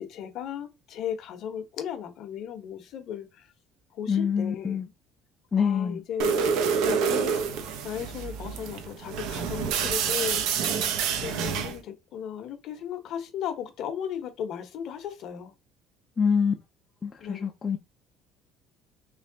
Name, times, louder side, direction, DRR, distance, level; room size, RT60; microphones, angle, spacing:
voice 1, 0.0-3.5 3.9-4.8 5.6-6.5 6.8-10.9 11.2-15.5 17.2-17.5, left 8 dB, 50° left, 1.0 m, -36 dB
voice 2, 4.1-4.9 5.5-6.0 16.2-16.5 17.0-17.8, left 6 dB, 20° left, 0.5 m, -25 dB
sound 1, 6.2-11.8, right 6 dB, 75° right, 0.7 m, -27 dB
3.3 x 3.1 x 3.9 m
cardioid pair, 165°, 0 cm